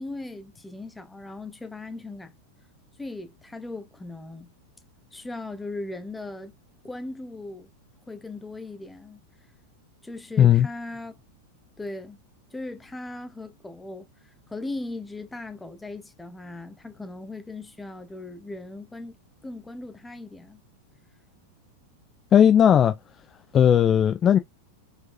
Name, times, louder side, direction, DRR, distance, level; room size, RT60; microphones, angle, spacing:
voice 1, 0.0-2.3 3.0-4.5 5.1-6.5 6.8-7.7 8.0-9.2 10.0-11.1 11.8-12.2 12.5-14.1 14.5-19.2 19.4-20.6, left 2 dB, 10° left, 1.0 m, -38 dB
voice 2, 22.3-22.9 23.5-24.4, left 9 dB, 25° left, 0.4 m, -17 dB
5.3 x 3.8 x 2.6 m
figure-of-eight pair, 90°, 0 cm